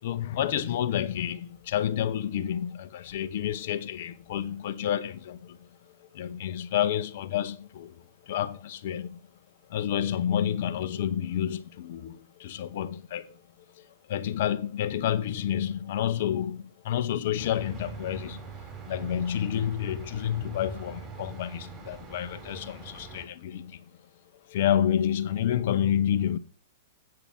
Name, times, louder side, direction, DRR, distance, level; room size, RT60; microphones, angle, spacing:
voice 1, 0.0-9.2 9.7-13.4 13.8-18.4 18.9-23.9 24.5-26.4, left 10 dB, 55° left, 0.9 m, -29 dB
sound 1, 17.4-23.3, right 5 dB, 20° right, 3.8 m, -43 dB
8.6 x 7.7 x 4.3 m
hypercardioid pair, 105°, 0 cm